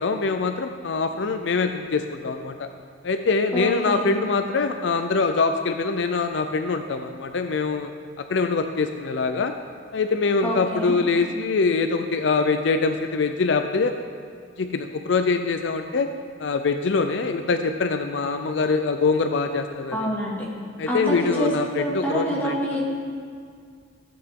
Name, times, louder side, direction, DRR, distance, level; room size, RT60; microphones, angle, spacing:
voice 1, 0.0-2.7 3.0-7.9 8.3-9.5 9.9-13.9 14.6-16.1 16.4-20.1 20.8-22.6, left 4 dB, 70° left, 7 dB, 0.5 m, -24 dB
voice 2, 3.5-4.2 10.4-11.0 19.9-20.4 20.9-21.5 21.8-22.8, equal, 10° left, -6 dB, 2.2 m, -26 dB
15.0 x 8.0 x 3.7 m, 2.1 s
head